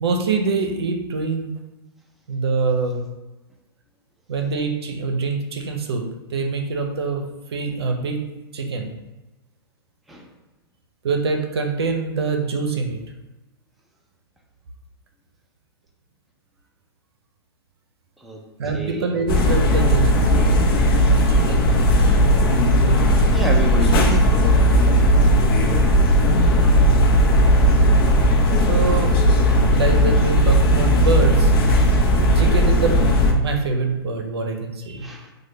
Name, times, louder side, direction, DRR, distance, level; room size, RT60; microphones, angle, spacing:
voice 1, 0.0-1.5 2.3-3.0 4.3-6.1 6.3-7.2 7.5-8.2 8.5-9.0 11.0-13.0 18.6-20.2 21.0-21.6 28.6-29.3 29.7-31.5 32.4-35.1, right 4 dB, 80° right, 4 dB, 0.6 m, -24 dB
voice 2, 18.7-19.0 23.3-24.3 26.9-27.0 35.0-35.3, right 2 dB, ahead, 0 dB, 0.4 m, -29 dB
sound 1, 19.3-33.3, equal, 65° left, 0.6 m, -16 dB
3.2 x 2.2 x 3.2 m, 1.1 s
hypercardioid pair, 125°, 13 cm